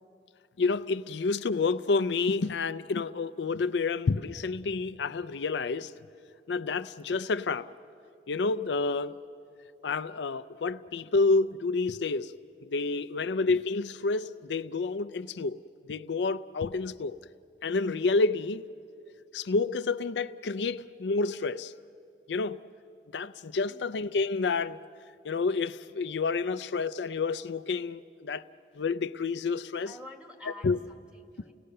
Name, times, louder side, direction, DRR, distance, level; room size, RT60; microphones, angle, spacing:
voice 1, 0.6-5.9 6.5-7.7 8.3-9.1 9.8-12.3 12.6-15.6 15.9-17.1 17.6-18.7 19.3-21.7 22.3-22.6 23.1-24.8 25.2-28.4 28.8-30.0 30.5-30.8, left 4 dB, 85° left, 0.5 m, -29 dB
voice 2, 23.7-24.0 29.8-31.5, left 2 dB, 5° right, 1.4 m, -49 dB
30.0 x 18.0 x 6.6 m
head